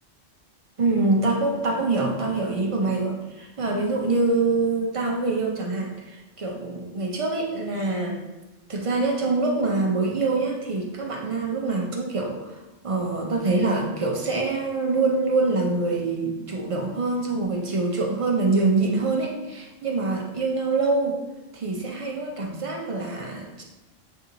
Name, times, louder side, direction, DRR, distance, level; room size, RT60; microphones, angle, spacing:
voice 1, 0.8-8.2 8.7-21.2 21.5-23.6, right 3 dB, 50° right, 0 dB, 0.4 m, -25 dB
7.4 x 2.6 x 2.8 m, 1.1 s
omnidirectional pair, 1.3 m